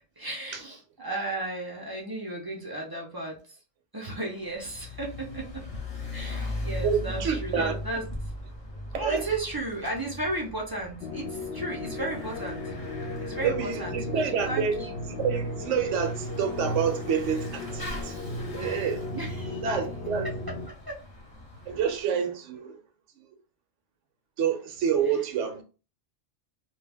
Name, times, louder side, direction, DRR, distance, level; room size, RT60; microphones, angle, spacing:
voice 1, 0.2-3.6 3.9-5.6 6.1-8.3 8.9-12.7 13.2-14.9 19.1-19.6 20.7-21.0, right 2 dB, 35° right, 0.4 m, -34 dB
Bicycle / Mechanisms, 4.4-22.0, left 1 dB, 30° left, 0.8 m, -40 dB
voice 2, 6.8-7.8 8.9-9.2 13.4-14.8 15.1-19.1 19.6-20.3 21.7-22.8 23.2-23.3 24.4-25.6, right 7 dB, 75° right, 0.9 m, -28 dB
sound 1, 11.0-20.7, left 1 dB, 65° left, 0.7 m, -35 dB
2.2 x 2.2 x 3.3 m
omnidirectional pair, 1.3 m